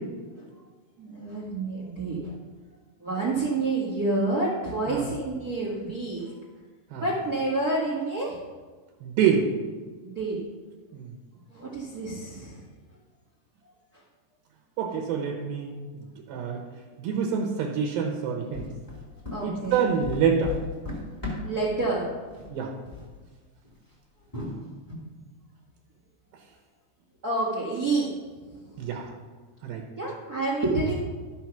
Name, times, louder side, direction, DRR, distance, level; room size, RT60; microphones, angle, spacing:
voice 1, 1.0-2.3 3.0-6.3 7.0-8.4 10.0-10.4 11.5-12.6 19.3-19.9 21.4-22.1 27.2-28.1 28.7-28.9 30.0-30.9, right 2 dB, 50° right, -4 dB, 1.1 m, -28 dB
voice 2, 9.0-9.4 10.9-11.1 14.8-15.7 16.3-16.6 17.0-18.7 19.4-20.5 22.5-22.7 28.8-29.0 29.6-29.8, right 7 dB, 75° right, 2 dB, 2.8 m, -26 dB
sound 1, 18.5-21.7 22.2-22.6 22.8-23.1 23.6-23.8 24.3-24.9, left 3 dB, 5° left, 1.9 m, -36 dB
12.5 x 6.1 x 5.8 m, 1.4 s
omnidirectional pair, 4.6 m